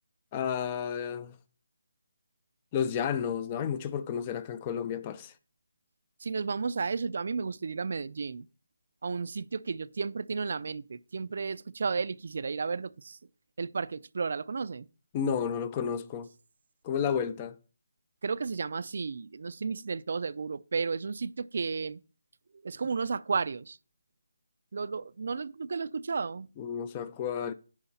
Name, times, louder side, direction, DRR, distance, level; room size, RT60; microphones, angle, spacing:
voice 1, 0.3-1.3 2.7-5.3 15.1-16.3 16.8-17.6 26.6-27.5, left 7 dB, 20° left, 0.4 m, -31 dB
voice 2, 6.2-8.5 9.0-13.2 13.6-14.9 18.2-22.0 22.6-23.8 24.7-26.5, right 4 dB, 50° right, 0.4 m, -33 dB
9.7 x 4.9 x 4.1 m
figure-of-eight pair, 170°, 0 cm